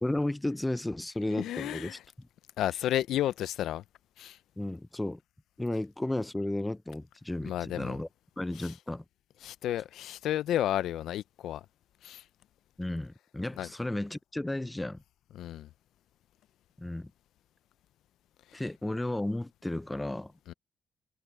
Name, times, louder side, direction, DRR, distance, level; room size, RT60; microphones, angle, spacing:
voice 1, 0.0-2.0 4.6-5.2 5.6-8.1 8.4-9.0 12.8-15.0 16.8-17.1 18.5-20.3, left 1 dB, 10° left, 0.5 m, -33 dB
voice 2, 1.3-2.0 2.6-3.8 4.2-4.4 7.4-8.0 8.6-8.7 9.4-11.7 12.0-12.2 13.6-13.7 15.3-15.7 18.5-18.6 20.5-20.6, left 12 dB, 80° left, 0.4 m, -32 dB
cardioid pair, 90°, 0 cm